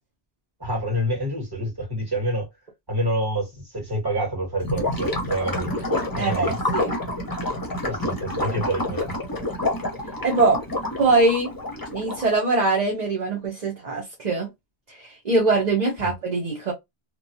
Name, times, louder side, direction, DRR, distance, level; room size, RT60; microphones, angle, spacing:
voice 1, 0.6-2.5 2.9-5.8 6.2-6.6 7.8-9.1 16.0-16.1, right 1 dB, 20° right, 1.8 m, -27 dB
Gurgling / Liquid, 4.6-12.3, left 1 dB, 20° left, 0.8 m, -28 dB
voice 2, 6.1-6.9 10.2-10.6 11.0-11.5 11.9-14.5 14.9-16.7, right 3 dB, 45° right, 0.9 m, -22 dB
2.9 x 2.2 x 2.6 m
omnidirectional pair, 1.1 m